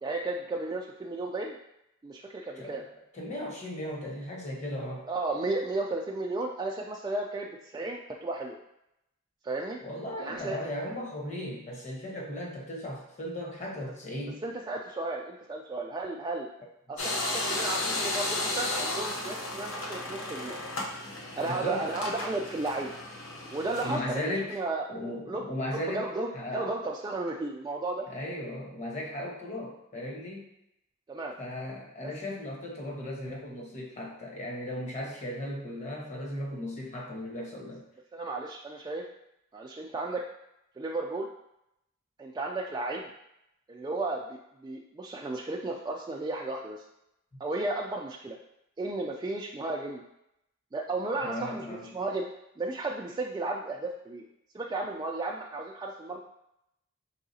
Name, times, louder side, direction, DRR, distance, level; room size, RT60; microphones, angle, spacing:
voice 1, 0.0-1.6 2.0-2.8 5.1-8.6 9.4-9.8 10.2-10.6 14.4-16.5 16.9-20.6 21.4-22.9 23.5-24.8 25.3-28.0 31.1-31.3 32.0-32.1 38.1-39.0 39.5-40.2 40.8-41.3 42.2-43.1 43.7-44.4 44.6-46.8 47.4-48.4 48.8-50.0 50.7-52.2 52.6-54.3 54.5-56.2, right 2 dB, 20° right, -1 dB, 0.3 m, -34 dB
voice 2, 3.1-5.1 9.8-14.4 21.4-21.9 23.8-24.6 24.9-26.1 26.3-26.7 28.1-30.5 31.4-37.8 51.2-51.9, left 1 dB, 35° left, -2 dB, 1.1 m, -36 dB
sound 1, 17.0-24.0, left 2 dB, 70° left, 0.8 m, -34 dB
4.7 x 3.5 x 2.7 m, 0.81 s
head